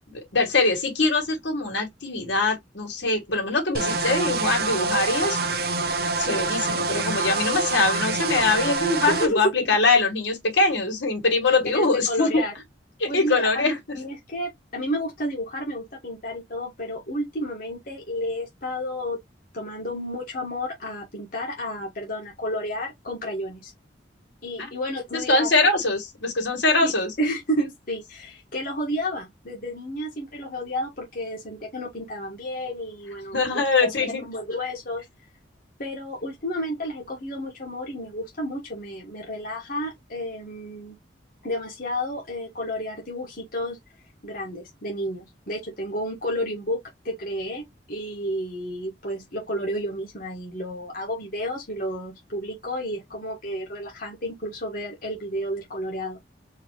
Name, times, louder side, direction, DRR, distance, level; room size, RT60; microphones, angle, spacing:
voice 1, 0.0-5.4 6.2-12.4 13.0-14.0 24.6-24.7 25.1-27.1 33.3-34.2, left 3 dB, 85° left, 2.6 m, -23 dB
sound 1, 3.7-9.3, right 3 dB, 55° right, 0.8 m, -26 dB
voice 2, 9.1-9.8 11.7-12.5 13.1-19.2 19.5-23.7 24.4-25.5 26.8-26.9 27.2-33.9 34.2-35.0 35.8-41.0 41.4-43.8 44.2-46.8 47.0-56.2, equal, 50° left, 1.6 m, -31 dB
4.8 x 3.2 x 3.1 m
head